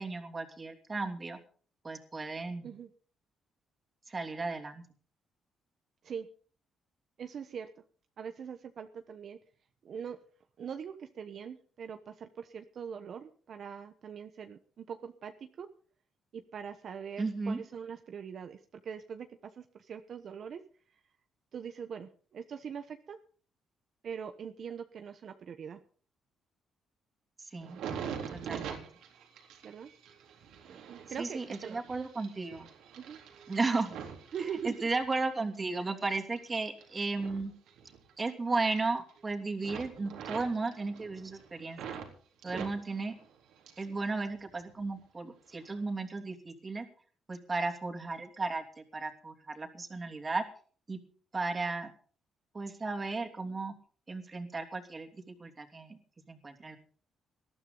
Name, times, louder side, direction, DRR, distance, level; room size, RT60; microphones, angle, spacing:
voice 1, 0.0-1.4 1.8-2.7 4.1-4.8 17.2-17.6 27.4-27.8 28.4-28.9 31.2-32.7 33.5-34.0 34.6-37.5 38.2-41.9 42.4-43.2 43.8-46.9 47.3-50.5 50.9-51.0 51.3-51.9 52.5-53.7 54.1-56.0 56.3-56.8, right 3 dB, 30° right, 4 dB, 2.9 m, -35 dB
voice 2, 7.2-7.8 8.2-9.4 9.8-10.2 10.6-15.7 16.3-20.6 21.5-23.2 24.0-25.8 29.6-29.9 30.7-31.8 33.0-33.2 34.3-34.9 42.5-42.6, right 7 dB, 60° right, 7 dB, 1.0 m, -42 dB
sound 1, 27.6-35.3 35.7-38.3 38.6-39.3 39.6-42.1 42.4-44.0 44.3-45.0 45.6-45.8, right 7 dB, 85° right, 3.8 m, -45 dB
19.5 x 13.0 x 4.0 m, 0.44 s
cardioid pair, 90°, 0 cm